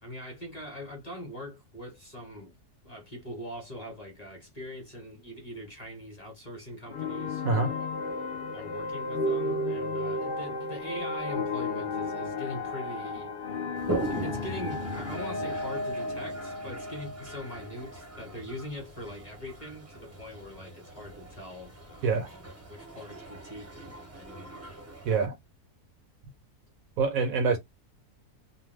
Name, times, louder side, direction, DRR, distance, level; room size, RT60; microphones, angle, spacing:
voice 1, 0.0-2.5 2.8-7.9 8.5-13.6 14.1-22.4 22.7-25.1, left 1 dB, 30° left, 1.0 m, -42 dB
sound 1, 6.9-18.1, left 2 dB, 65° left, 0.5 m, -33 dB
Toilet flush, 13.8-25.3, right 2 dB, 15° right, 0.6 m, -40 dB
voice 2, 27.0-27.6, right 4 dB, 70° right, 1.0 m, -25 dB
2.5 x 2.2 x 3.3 m
omnidirectional pair, 1.6 m